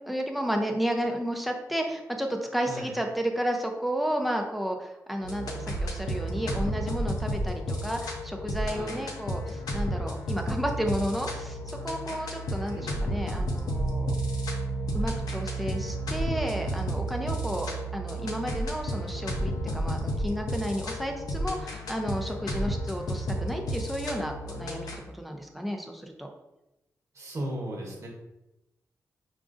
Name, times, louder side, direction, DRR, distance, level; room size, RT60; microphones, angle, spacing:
voice 1, 0.1-14.1 14.9-26.3, equal, ahead, 2 dB, 0.5 m, -32 dB
sound 1, 5.2-25.0, equal, 85° left, 0.6 m, -32 dB
voice 2, 8.7-9.0 12.7-13.2 27.1-28.1, right 1 dB, 55° right, -2 dB, 1.0 m, -37 dB
4.9 x 2.5 x 2.4 m, 0.94 s
wide cardioid pair, 120°, 6 cm